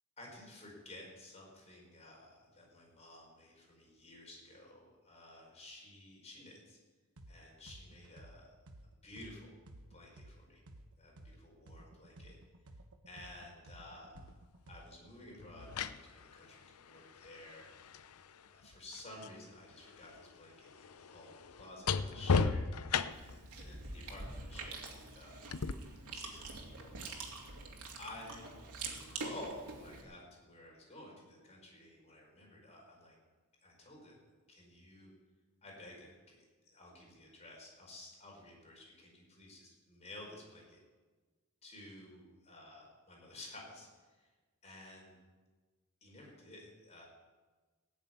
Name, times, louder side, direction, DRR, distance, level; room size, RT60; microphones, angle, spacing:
voice 1, 0.2-6.8 7.3-8.5 8.8-9.6 9.9-10.6 11.0-12.4 13.0-14.2 14.7-17.7 18.5-22.7 23.2-25.4 26.1-26.9 28.0-33.1 33.6-34.2 34.5-35.1 35.6-36.4 36.6-40.8 41.6-43.9 44.2-44.3 44.6-45.1 46.0-47.1, left 1 dB, 30° left, -1 dB, 4.9 m, -53 dB
sound 1, 7.2-7.3 7.7-11.3 11.7-15.1, right 1 dB, 70° right, 1.3 m, -54 dB
sound 2, 14.1-14.3 15.4-19.4 19.7-23.5 25.5-25.7, left 5 dB, 75° left, 0.6 m, -36 dB
Chewing mastication, 23.1-30.0, right 3 dB, 85° right, 2.7 m, -45 dB
18.0 x 7.3 x 9.4 m, 1.3 s
head